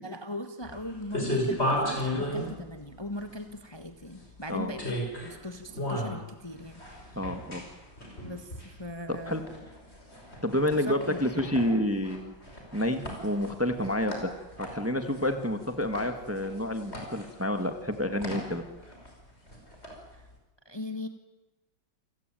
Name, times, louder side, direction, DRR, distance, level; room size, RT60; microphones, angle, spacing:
voice 1, 0.0-4.9 5.2-6.8 8.2-8.5 8.8-9.5 10.8-11.2 20.6-21.1, left 1 dB, 15° left, 7 dB, 1.5 m, -39 dB
sound 1, 0.6-20.4, equal, 30° left, 6.2 m, -36 dB
voice 2, 7.1-7.6 9.1-9.4 10.4-12.3 12.7-14.3 14.6-18.6, left 1 dB, 10° right, 7 dB, 1.5 m, -29 dB
28.5 x 17.0 x 9.1 m, 1.1 s
omnidirectional pair, 2.1 m